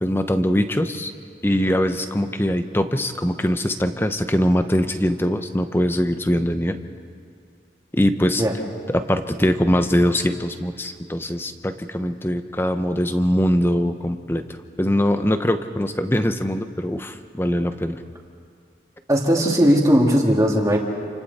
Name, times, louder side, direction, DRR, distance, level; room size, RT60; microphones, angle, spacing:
voice 1, 0.0-1.1 1.4-6.8 7.9-8.4 8.9-18.0, equal, 15° left, 8 dB, 0.8 m, -22 dB
voice 2, 19.1-20.8, equal, 20° right, -1 dB, 2.5 m, -17 dB
28.5 x 28.0 x 4.2 m, 2.4 s
head